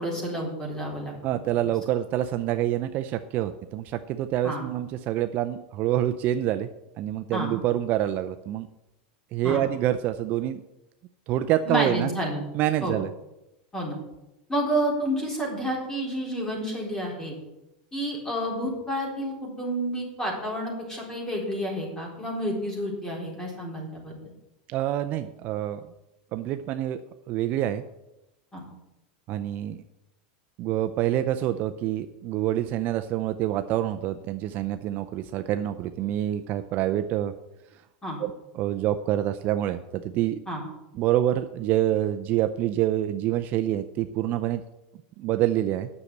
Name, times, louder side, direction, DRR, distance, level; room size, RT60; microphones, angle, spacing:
voice 1, 0.0-1.1 4.4-4.6 7.3-7.5 9.4-9.6 11.7-12.4 12.8-12.9 13.7-14.0 14.5-17.4 17.9-24.2 28.5-28.6 38.0-38.2 40.5-40.6, equal, 10° left, -1 dB, 3.9 m, -30 dB
voice 2, 1.2-6.7 7.0-8.7 9.3-10.6 11.3-12.1 12.5-13.1 24.7-25.8 26.3-27.0 27.3-27.8 29.3-29.8 30.6-37.3 38.2-40.4 41.0-44.6 45.2-45.9, right 12 dB, 40° right, 9 dB, 0.5 m, -26 dB
9.7 x 6.6 x 8.4 m, 0.93 s
supercardioid pair, 150°, 5 cm